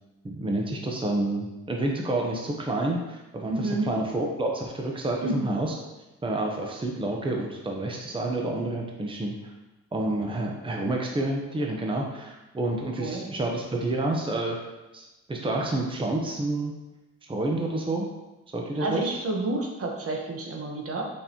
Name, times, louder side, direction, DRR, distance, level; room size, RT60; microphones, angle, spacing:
voice 1, 0.2-5.7 6.2-9.5 9.9-14.7 14.9-16.7 17.3-18.1 18.5-19.0, right 2 dB, 15° right, 0 dB, 0.9 m, -29 dB
voice 2, 3.5-3.9 5.2-5.5 13.0-13.3 18.7-21.0, right 2 dB, 50° right, 1 dB, 1.2 m, -29 dB
6.8 x 5.3 x 3.0 m, 1.1 s
cardioid pair, 90°, 30 cm